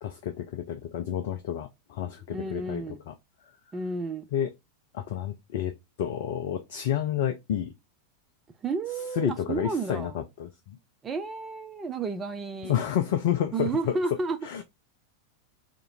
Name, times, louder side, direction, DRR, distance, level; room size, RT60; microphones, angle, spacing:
voice 1, 0.0-3.1 4.3-4.5 4.9-7.7 9.2-10.8 12.6-13.7 14.4-14.6, left 10 dB, 55° left, 0.4 m, -30 dB
voice 2, 2.3-3.0 3.7-4.2 8.6-10.1 11.0-12.8 13.5-14.4, right 3 dB, 20° right, 0.5 m, -31 dB
2.9 x 2.5 x 4.0 m
figure-of-eight pair, 90°, 0 cm